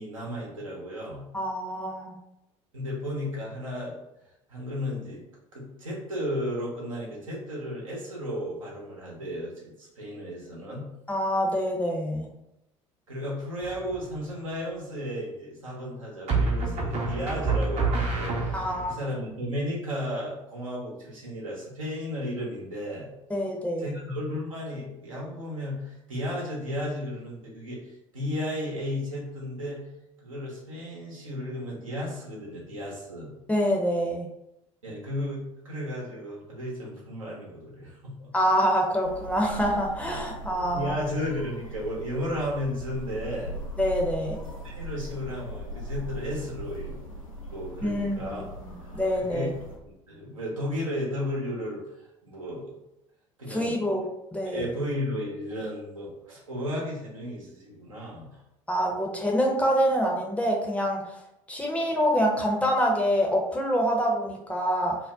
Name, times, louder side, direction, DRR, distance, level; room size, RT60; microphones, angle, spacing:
voice 1, 0.0-1.2 2.7-4.0 4.5-5.2 5.5-10.8 13.1-23.1 23.8-27.8 28.1-29.9 30.2-33.3 34.8-38.3 40.5-43.6 44.6-47.0 47.5-48.5 49.2-49.5 49.8-52.8 53.4-53.8 54.5-58.4, equal, 80° right, -4 dB, 0.9 m, -34 dB
voice 2, 1.3-2.1 11.1-12.3 18.5-19.0 23.3-23.9 33.5-34.3 38.3-41.0 43.8-44.4 47.8-49.5 53.5-54.7 58.7-61.0 61.5-65.0, equal, 10° left, -1 dB, 0.6 m, -26 dB
sound 1, 13.6-14.2 16.3-18.9, right 3 dB, 40° right, 0.7 m, -27 dB
sound 2, 39.0-49.8, right 1 dB, 90° left, 0.4 m, -39 dB
2.6 x 2.1 x 3.5 m, 0.85 s
figure-of-eight pair, 60°, 17 cm